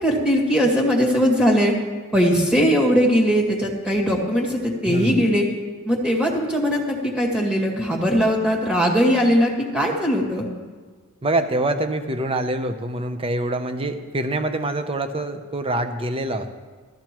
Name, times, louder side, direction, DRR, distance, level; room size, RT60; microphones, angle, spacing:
voice 1, 0.0-1.7 2.1-5.4 5.9-10.4, equal, 5° right, -1 dB, 2.1 m, -20 dB
voice 2, 4.9-5.3 11.2-16.5, right 1 dB, 25° right, 8 dB, 0.7 m, -25 dB
16.0 x 13.5 x 3.1 m, 1.5 s
head